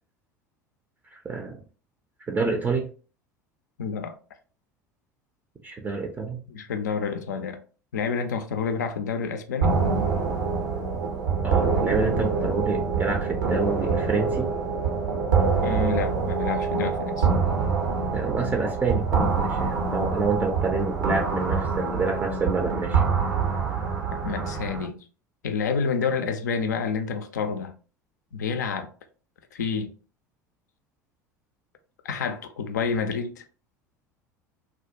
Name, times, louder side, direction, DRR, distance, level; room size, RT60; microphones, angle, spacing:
voice 1, 1.2-1.6 2.3-2.9 5.6-6.4 11.4-14.5 18.1-23.0, right 4 dB, 20° right, 0.4 m, -28 dB
voice 2, 3.8-4.1 6.5-7.6 7.9-9.8 15.6-17.3 24.2-25.0 25.4-27.7 28.3-28.9 29.5-29.9 32.0-33.4, left 5 dB, 70° left, 0.4 m, -28 dB
sound 1, 9.6-24.8, right 5 dB, 80° right, 0.7 m, -25 dB
2.2 x 2.2 x 2.7 m
figure-of-eight pair, 70°, 10 cm